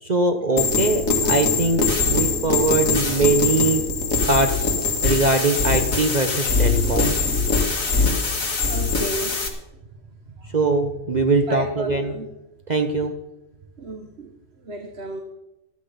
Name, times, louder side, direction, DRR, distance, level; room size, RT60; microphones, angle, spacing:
voice 1, 0.0-3.8 4.3-4.7 5.0-7.1 10.5-12.1 12.7-13.1, right 2 dB, 35° right, 5 dB, 1.1 m, -22 dB
sound 1, 0.6-9.5, left 4 dB, 90° left, 2.5 m, -22 dB
voice 2, 8.7-9.4 11.5-12.3 13.8-14.3 14.7-15.2, right 2 dB, 55° right, 4 dB, 1.7 m, -32 dB
15.0 x 13.5 x 5.2 m, 0.98 s
omnidirectional pair, 1.4 m